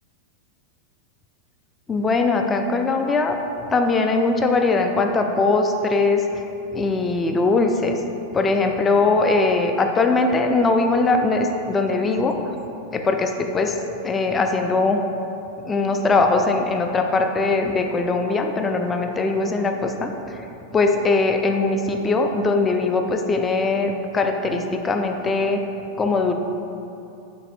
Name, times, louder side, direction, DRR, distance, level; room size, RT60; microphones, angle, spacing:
voice 1, 1.9-3.4 3.7-6.3 6.7-8.0 8.3-12.4 12.9-13.8 14.0-15.1 15.6-20.4 20.7-25.7 26.0-26.3, left 3 dB, 20° left, 5 dB, 0.3 m, -21 dB
3.9 x 2.6 x 3.4 m, 2.8 s
hypercardioid pair, 100°, 0 cm